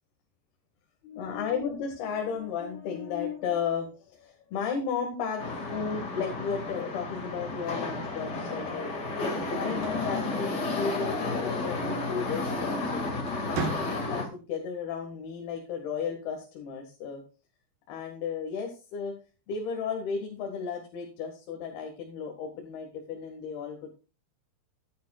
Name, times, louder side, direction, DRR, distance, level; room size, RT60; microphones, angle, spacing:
voice 1, 1.0-5.4 5.7-13.1 13.5-17.2 17.9-19.1 19.5-23.9, left 6 dB, 70° left, 3 dB, 3.5 m, -34 dB
sound 1, 5.4-14.3, left 2 dB, 35° left, 1.9 m, -32 dB
sound 2, 9.5-11.1 12.5-12.8 13.2-14.4, right 6 dB, 65° right, 2.6 m, -38 dB
14.5 x 11.5 x 2.4 m, 0.33 s
omnidirectional pair, 4.8 m